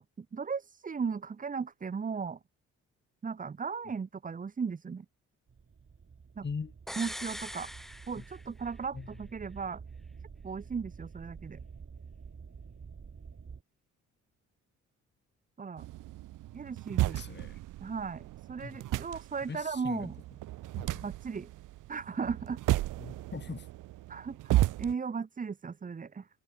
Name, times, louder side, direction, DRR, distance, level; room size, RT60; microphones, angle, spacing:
voice 1, 0.0-2.4 3.2-5.1 6.4-6.5 7.0-7.7 8.1-9.8 10.4-11.6 15.6-15.8 16.5-17.2 17.8-20.1 21.0-21.5 21.9-22.6 24.1-26.3, right 5 dB, 25° right, 0.7 m, -36 dB
sound 1, 5.5-13.6, right 5 dB, 40° right, 6.7 m, -49 dB
sound 2, 6.9-8.8 9.1-9.2, equal, ahead, 0.3 m, -42 dB
sound 3, 15.8-24.9, right 16 dB, 75° right, 0.7 m, -34 dB
voice 2, 17.1-17.6 18.6-18.8 19.5-20.1 20.8-21.0 23.0-23.7, left 5 dB, 35° left, 2.1 m, -41 dB
supercardioid pair, 70°, 31 cm